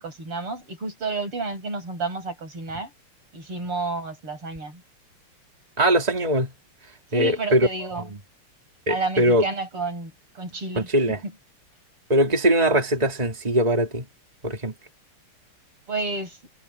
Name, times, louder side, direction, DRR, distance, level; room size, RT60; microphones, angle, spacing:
voice 1, 0.0-2.9 3.3-4.8 7.1-8.1 8.9-11.3 15.9-16.4, right 3 dB, 80° right, 8.8 m, -31 dB
voice 2, 5.8-6.5 7.1-7.7 8.9-9.4 10.8-11.2 12.1-14.1 14.4-14.7, right 1 dB, 15° right, 3.1 m, -21 dB
omnidirectional pair, 2.4 m